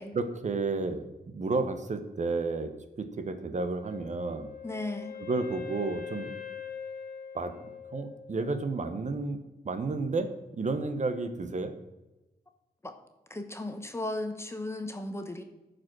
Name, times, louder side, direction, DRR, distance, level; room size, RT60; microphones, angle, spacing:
voice 1, 0.1-4.5 5.2-6.3 7.3-7.5 7.9-9.4 9.6-11.7, right 3 dB, 45° right, 9 dB, 0.9 m, -32 dB
Wind instrument woodwind instrument, 3.8-8.7, left 7 dB, 60° left, 2.0 m, -42 dB
voice 2, 4.6-5.2 12.8-12.9 13.3-15.4, left 2 dB, 15° left, 6 dB, 0.9 m, -36 dB
14.5 x 5.2 x 6.0 m, 1.0 s
wide cardioid pair, 165°, 17 cm